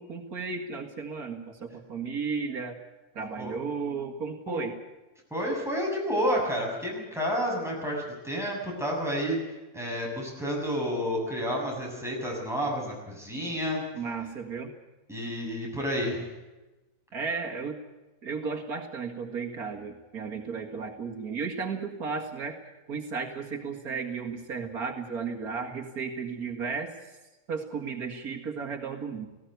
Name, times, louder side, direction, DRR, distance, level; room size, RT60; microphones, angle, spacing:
voice 1, 0.0-2.8 3.2-4.7 13.9-14.7 17.1-17.8 18.2-22.6 22.9-27.1 27.5-29.3, right 5 dB, 80° right, 3 dB, 2.4 m, -34 dB
voice 2, 5.3-13.8 15.1-16.3, equal, ahead, -2 dB, 7.2 m, -30 dB
18.0 x 16.5 x 9.3 m, 1.1 s
omnidirectional pair, 1.5 m